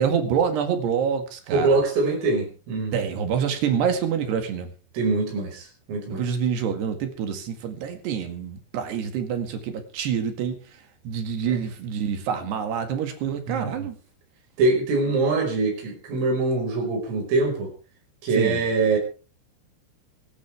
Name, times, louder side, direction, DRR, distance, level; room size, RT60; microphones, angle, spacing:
voice 1, 0.0-1.8 2.9-4.7 6.1-10.6 11.1-14.0 18.4-18.6, right 7 dB, 60° right, 6 dB, 3.8 m, -26 dB
voice 2, 1.5-3.1 4.9-6.2 11.5-11.6 13.5-13.9 14.6-17.7 18.2-19.0, right 3 dB, 80° right, 1 dB, 7.6 m, -23 dB
24.5 x 12.0 x 3.5 m, 0.36 s
omnidirectional pair, 5.7 m